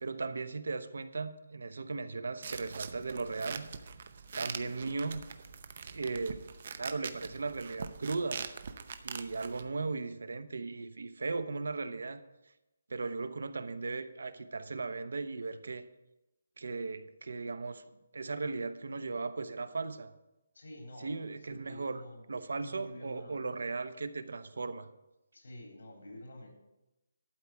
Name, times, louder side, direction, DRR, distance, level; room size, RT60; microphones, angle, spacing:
voice 1, 0.0-3.7 4.3-5.2 5.8-6.4 6.7-8.4 9.0-12.2 12.9-15.8 16.6-17.8 18.1-20.1 21.0-22.0 22.3-24.9, right 3 dB, 80° right, 12 dB, 0.9 m, -37 dB
sound 1, 2.4-9.6, right 6 dB, 40° right, 0.7 m, -43 dB
voice 2, 20.5-21.2 21.5-22.2 22.6-23.5 25.3-26.5, left 1 dB, 75° left, 0 dB, 3.5 m, -48 dB
12.0 x 4.7 x 8.1 m, 0.95 s
hypercardioid pair, 175°, 0 cm